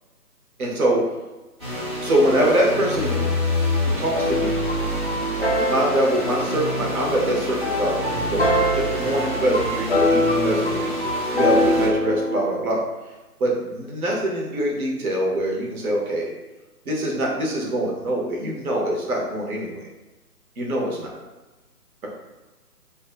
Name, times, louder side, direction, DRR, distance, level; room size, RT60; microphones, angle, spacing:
voice 1, 0.6-1.0 2.0-3.1 4.0-4.6 5.6-7.9 8.2-10.9 11.3-12.8 13.4-16.3 16.9-19.9 20.6-21.1, right 1 dB, 65° right, -2 dB, 0.8 m, -24 dB
sound 1, 1.6-11.9, equal, 15° right, 0.7 m, -27 dB
sound 2, 4.1-12.4, left 1 dB, 35° left, 0.5 m, -24 dB
2.6 x 2.2 x 2.4 m, 1.1 s
figure-of-eight pair, 155°, 47 cm